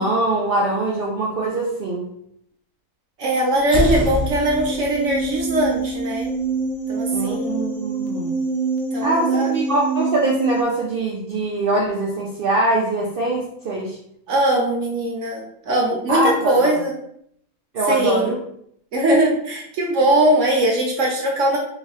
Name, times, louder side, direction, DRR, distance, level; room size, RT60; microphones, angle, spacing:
voice 1, 0.0-2.1 7.1-8.3 9.0-14.0 16.1-16.5 17.7-18.4, right 2 dB, 85° right, -2 dB, 0.5 m, -23 dB
voice 2, 3.2-6.3 6.9-7.7 8.9-9.5 14.3-16.9 17.9-18.3 18.9-21.6, right 1 dB, 60° right, -1 dB, 1.0 m, -20 dB
sound 1, 3.6-7.4, left 2 dB, 5° left, 0.4 m, -28 dB
sound 2, 3.9-10.6, right 4 dB, 70° left, 0.4 m, -26 dB
3.8 x 2.7 x 3.0 m, 0.71 s
omnidirectional pair, 1.7 m